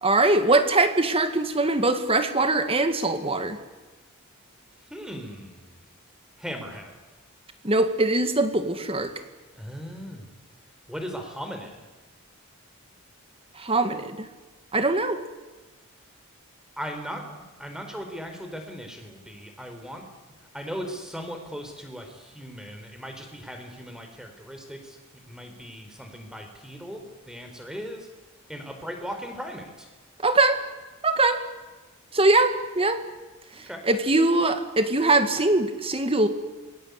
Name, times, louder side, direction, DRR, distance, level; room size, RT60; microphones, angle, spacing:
voice 1, 0.0-3.6 7.6-9.1 13.6-14.3 14.7-15.2 30.2-30.6 31.0-31.4 32.1-33.0 33.6-36.3, right 2 dB, 25° right, 9 dB, 2.1 m, -22 dB
voice 2, 4.9-5.9 6.4-7.0 9.6-10.3 10.9-11.8 16.8-20.0 20.5-28.1 28.5-29.9 33.5-33.8, equal, 5° right, 5 dB, 4.3 m, -38 dB
27.5 x 23.0 x 8.3 m, 1.2 s
head